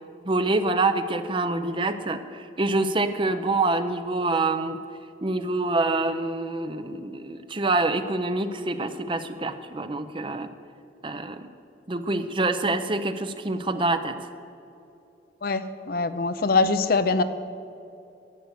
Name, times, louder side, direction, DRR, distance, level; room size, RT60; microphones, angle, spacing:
voice 1, 0.2-4.8 5.2-10.5 11.0-11.5 11.9-14.1, right 2 dB, 25° right, 10 dB, 0.6 m, -26 dB
voice 2, 15.9-17.2, left 3 dB, 50° left, 11 dB, 0.6 m, -22 dB
13.0 x 8.1 x 8.0 m, 2.7 s
head